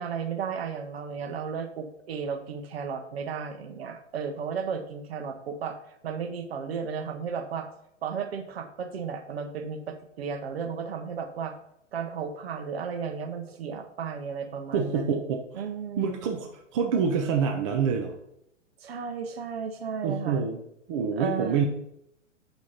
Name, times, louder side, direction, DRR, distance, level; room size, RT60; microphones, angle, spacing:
voice 1, 0.0-5.8 6.0-7.7 8.0-11.5 11.9-15.2 15.5-16.3 18.8-20.5 21.2-21.6, right 6 dB, 50° right, 6 dB, 0.9 m, -34 dB
voice 2, 14.7-15.4 16.0-18.1 20.0-20.6 20.9-21.6, right 6 dB, 25° right, 2 dB, 0.5 m, -26 dB
8.4 x 3.1 x 4.2 m, 0.78 s
figure-of-eight pair, 120°, 38 cm